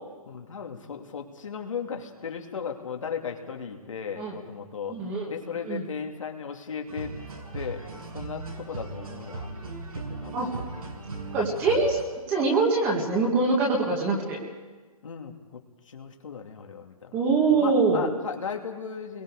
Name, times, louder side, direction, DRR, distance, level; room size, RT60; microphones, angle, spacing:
voice 1, 0.3-5.0 5.3-7.1 7.5-9.5 9.9-11.2 15.0-15.6 15.9-17.2 17.5-19.2, left 6 dB, 60° left, 2 dB, 2.7 m, -36 dB
voice 2, 4.9-5.3 5.7-5.8 10.3-10.5 11.3-12.0 12.3-14.4 17.1-18.1, right 3 dB, 10° right, -1 dB, 2.1 m, -23 dB
sound 1, 6.9-12.0, right 3 dB, 80° right, 7.0 m, -38 dB
27.5 x 22.5 x 5.0 m, 1.4 s
hypercardioid pair, 175°, 19 cm